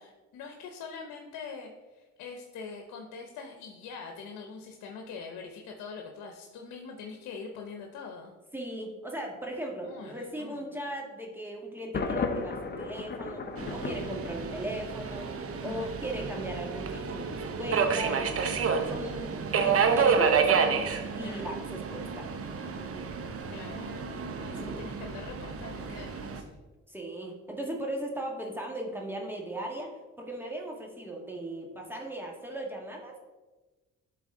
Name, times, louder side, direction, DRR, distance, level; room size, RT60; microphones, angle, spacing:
voice 1, 0.0-8.4 9.8-10.8 15.6-16.0 21.2-21.5 23.5-26.6, left 5 dB, 90° left, 3 dB, 0.9 m, -44 dB
voice 2, 8.5-15.3 15.6-20.6 21.1-22.3 24.5-24.9 26.9-33.2, right 1 dB, 5° right, -1 dB, 1.6 m, -37 dB
Thunder, 11.9-14.9, left 4 dB, 35° left, 0.8 m, -34 dB
Subway metro underground, 13.6-26.4, right 6 dB, 50° right, 0.8 m, -30 dB
11.0 x 4.1 x 3.8 m, 1.2 s
cardioid pair, 90°, 30 cm